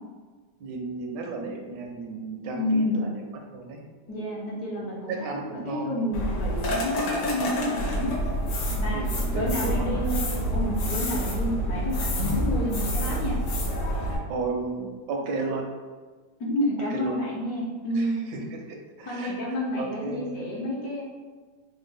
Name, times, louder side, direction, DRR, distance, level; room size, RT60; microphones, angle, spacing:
voice 1, 0.6-3.2 3.5-3.8 5.1-6.0 8.7-10.0 14.0-15.6 16.9-17.2 18.0-20.4, right 3 dB, 80° right, 2 dB, 1.2 m, -34 dB
voice 2, 2.5-3.1 4.1-5.1 5.7-8.1 8.8-9.0 9.3-10.1 10.5-13.4 16.4-18.2 19.0-21.0, left 1 dB, 65° left, -5 dB, 1.2 m, -29 dB
sound 1, 6.1-14.2, equal, 90° left, 1.4 m, -27 dB
3.4 x 2.2 x 3.2 m, 1.4 s
omnidirectional pair, 1.9 m